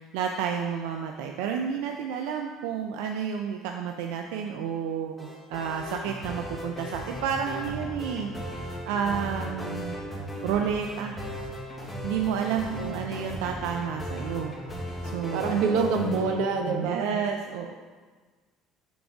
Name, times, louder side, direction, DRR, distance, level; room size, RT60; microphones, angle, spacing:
voice 1, 0.0-8.6 8.9-10.0 10.4-11.2 12.0-15.9 16.7-17.7, right 7 dB, 90° right, 3 dB, 0.4 m, -31 dB
sound 1, 5.2-16.4, equal, 5° left, 1.0 m, -36 dB
voice 2, 12.5-12.9 15.3-17.1, right 4 dB, 70° right, 4 dB, 0.8 m, -27 dB
9.4 x 3.9 x 3.5 m, 1.4 s
cardioid pair, 175°, 0 cm